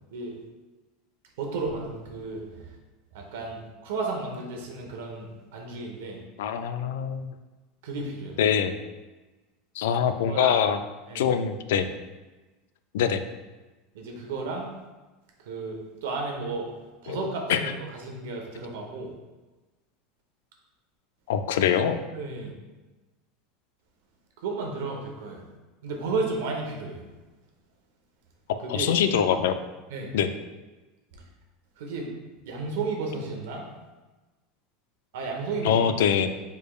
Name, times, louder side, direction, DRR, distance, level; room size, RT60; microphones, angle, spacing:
voice 1, 1.4-2.7 3.1-6.2 7.8-8.4 10.3-10.6 11.1-11.2 13.9-14.7 15.4-16.7 17.0-17.7 18.0-19.1 22.1-22.5 24.4-25.4 25.8-27.0 28.6-28.9 29.9-30.1 31.8-32.1 32.5-33.6 35.1-35.8, right 3 dB, 85° right, 1 dB, 1.0 m, -33 dB
voice 2, 6.4-7.3 8.4-8.7 9.8-10.8 11.1-11.9 12.9-13.2 17.1-17.7 21.3-22.0 28.7-29.6 30.1-30.3 35.6-36.3, left 8 dB, 85° left, 9 dB, 0.3 m, -24 dB
4.9 x 4.5 x 2.4 m, 1.2 s
supercardioid pair, 130°, 0 cm